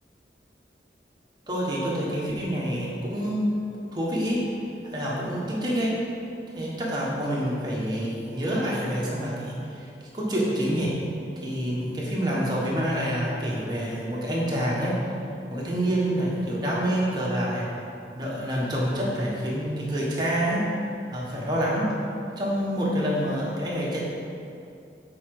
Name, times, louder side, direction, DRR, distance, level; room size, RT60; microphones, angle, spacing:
voice 1, 1.5-3.5 3.9-4.4 4.8-5.9 6.5-9.9 10.1-10.9 11.4-15.1 15.5-17.7 18.1-20.7 21.1-21.9 22.4-24.0, equal, 25° right, -6 dB, 1.5 m, -27 dB
8.5 x 4.7 x 5.0 m, 2.6 s
head